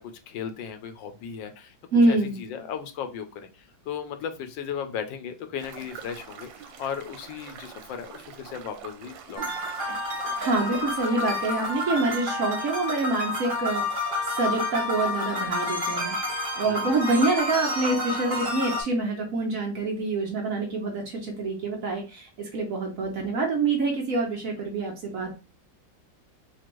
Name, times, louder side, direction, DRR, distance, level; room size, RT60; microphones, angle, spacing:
voice 1, 0.0-1.7 2.1-9.5 16.6-16.8, left 7 dB, 80° left, 7 dB, 1.3 m, -36 dB
voice 2, 1.9-2.4 10.4-14.1 14.4-16.2 16.6-25.3, right 3 dB, 55° right, 0 dB, 1.0 m, -26 dB
sound 1, 5.6-12.2, right 6 dB, 90° right, 1.4 m, -44 dB
sound 2, 9.4-18.8, left 2 dB, 30° right, 1.3 m, -29 dB
4.2 x 2.4 x 3.0 m, 0.31 s
omnidirectional pair, 2.0 m